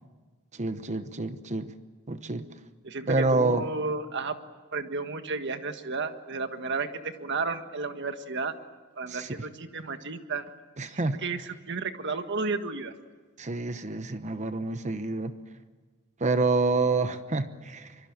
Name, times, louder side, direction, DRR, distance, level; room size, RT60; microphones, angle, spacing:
voice 1, 0.5-1.7 2.1-2.5 3.1-3.6 9.1-9.3 10.8-11.2 13.4-15.3 16.2-17.9, right 3 dB, 35° right, 11 dB, 1.0 m, -27 dB
voice 2, 2.8-4.3 4.7-8.6 9.0-10.4 10.9-12.9, right 4 dB, 55° right, 8 dB, 1.6 m, -32 dB
24.5 x 23.5 x 9.0 m, 1.4 s
head